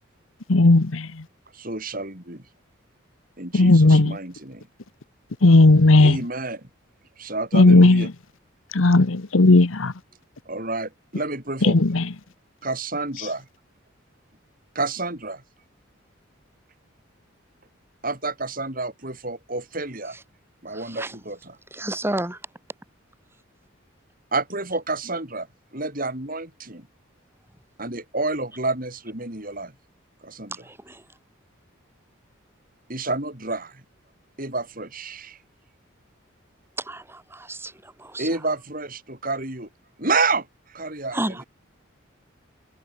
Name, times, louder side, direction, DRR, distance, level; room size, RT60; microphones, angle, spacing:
voice 1, 0.5-1.1 3.5-4.2 5.4-6.2 7.5-8.0 8.7-9.9 11.7-12.0, left 2 dB, 85° left, 1.1 m, -15 dB
voice 2, 1.5-2.4 3.4-4.7 6.0-6.7 7.2-8.1 10.5-11.8 12.6-13.5 14.7-15.4 18.0-20.2 20.6-21.6 24.3-25.5 25.7-26.9 27.8-29.7 30.2-30.6 32.9-33.8 34.4-35.4 38.2-39.7 40.0-41.4, right 3 dB, 45° right, 5.9 m, -29 dB
voice 3, 20.7-21.1 21.7-22.4 30.6-31.0 36.8-37.7 38.1-38.3 41.1-41.4, right 1 dB, 10° right, 5.8 m, -31 dB
head